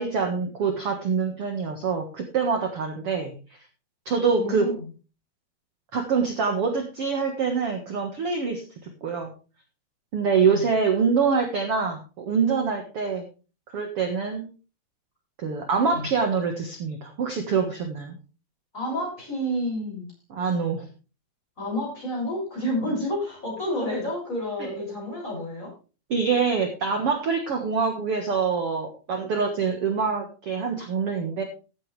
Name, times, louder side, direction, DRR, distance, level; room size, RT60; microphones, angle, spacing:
voice 1, 0.0-3.3 4.0-4.7 5.9-8.6 9.0-9.3 10.1-13.2 13.7-14.5 15.4-18.2 20.3-20.8 24.6-24.7 26.1-31.4, right 5 dB, 65° right, 4 dB, 1.4 m, -25 dB
voice 2, 4.4-4.8 10.5-10.6 15.9-16.1 18.7-20.1 21.6-25.7, equal, 15° left, -2 dB, 7.1 m, -29 dB
14.0 x 10.5 x 3.3 m, 0.34 s
omnidirectional pair, 4.9 m